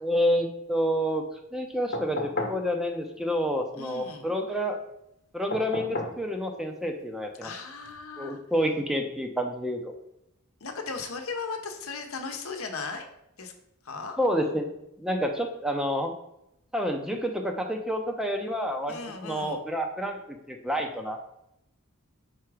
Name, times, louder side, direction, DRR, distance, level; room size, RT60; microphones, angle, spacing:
voice 1, 0.0-1.2 1.5-4.8 5.3-7.5 8.2-9.9 14.2-14.7 15.0-16.1 16.7-21.2, equal, ahead, 3 dB, 0.5 m, -29 dB
sound 1, 1.9-2.6 5.5-6.2 7.8-7.9, left 1 dB, 45° left, 1.0 m, -32 dB
voice 2, 3.7-4.3 7.4-8.4 10.6-13.1 13.4-13.5 13.8-14.2 18.9-19.6, left 4 dB, 70° left, 5 dB, 0.9 m, -36 dB
4.7 x 4.5 x 4.8 m, 0.82 s
head